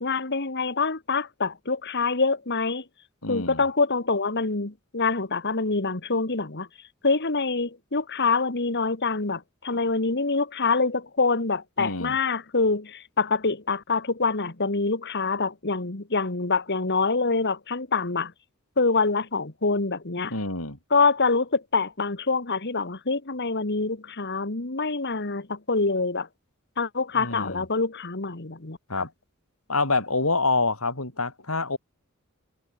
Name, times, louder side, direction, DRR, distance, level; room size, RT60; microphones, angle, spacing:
voice 1, 0.0-2.8 3.3-6.7 7.0-18.3 18.8-20.3 20.9-26.3 26.8-29.1, left 4 dB, 55° left, 2.0 m, -25 dB
voice 2, 3.2-3.6 11.8-12.2 20.3-20.8 27.2-27.6 28.9-29.1 29.7-31.8, left 3 dB, 80° left, 6.8 m, -26 dB
head